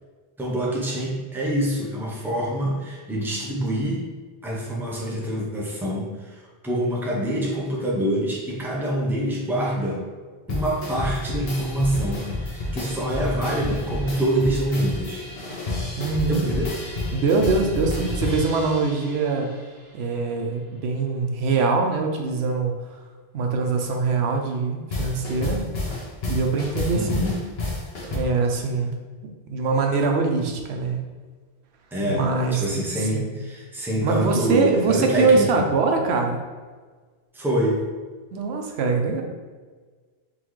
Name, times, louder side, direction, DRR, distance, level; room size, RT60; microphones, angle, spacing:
voice 1, 0.4-4.0 4.4-10.0 10.5-15.2 16.3-16.7 26.9-27.4 31.9-35.5 37.3-37.8, right 1 dB, ahead, -4 dB, 0.7 m, -26 dB
sound 1, 10.5-19.7 24.9-28.2, left 2 dB, 70° left, 1.1 m, -30 dB
voice 2, 16.0-16.4 17.1-19.5 19.9-22.7 23.3-25.6 26.3-27.2 28.1-29.0 29.5-31.0 32.1-33.3 34.0-36.4 38.3-39.2, right 4 dB, 90° right, 3 dB, 0.9 m, -23 dB
3.9 x 3.4 x 3.1 m, 1.4 s
omnidirectional pair, 1.1 m